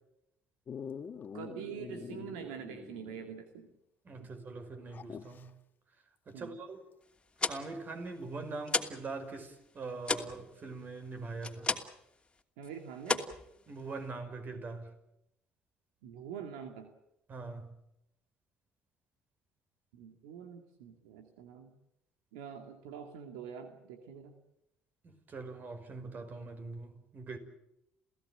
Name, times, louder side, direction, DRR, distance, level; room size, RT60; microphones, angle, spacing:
Dog, 0.7-3.4 3.7-3.8 4.9-5.5 7.6-7.7, left 7 dB, 45° left, 1.7 m, -45 dB
voice 1, 1.3-3.7 4.2-4.3 6.3-6.5 12.6-13.3 16.0-16.9 19.9-21.7 22.3-24.3, right 8 dB, 80° right, 2.3 m, -45 dB
voice 2, 4.0-5.5 6.3-6.8 7.5-11.7 13.7-14.9 17.3-17.7 25.0-27.4, right 3 dB, 40° right, 5.4 m, -42 dB
sound 1, 7.2-9.1 9.4-12.1 12.4-12.7 13.0-14.1, left 3 dB, 20° left, 2.8 m, -35 dB
28.5 x 16.5 x 9.1 m
hypercardioid pair, 65°, 5 cm